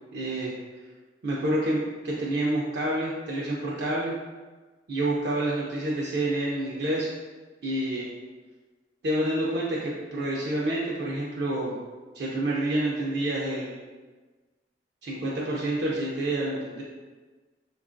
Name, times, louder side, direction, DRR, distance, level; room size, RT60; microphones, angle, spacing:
voice 1, 0.1-0.5 1.2-4.1 4.9-7.1 7.6-8.1 9.0-11.8 12.1-13.8 15.0-16.8, right 1 dB, 60° right, -5 dB, 0.5 m, -28 dB
3.6 x 2.3 x 2.5 m, 1.3 s
head